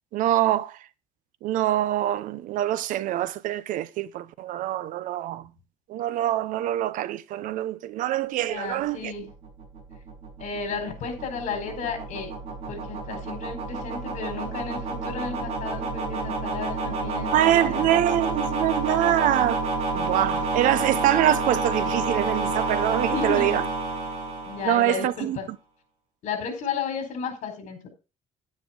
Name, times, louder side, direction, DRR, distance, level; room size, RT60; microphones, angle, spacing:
voice 1, 0.1-0.8 1.4-5.5 5.9-9.1 17.3-19.6 19.9-23.7 24.6-25.4, right 13 dB, 85° right, 0.8 m, -24 dB
voice 2, 8.4-9.3 10.4-12.3 12.7-17.9 20.6-20.9 23.1-23.7 24.5-25.5 26.2-27.9, left 5 dB, 70° left, 4.4 m, -33 dB
sound 1, 9.0-25.1, right 3 dB, 50° right, 5.2 m, -29 dB
10.5 x 9.8 x 3.8 m
cardioid pair, 130°, 13 cm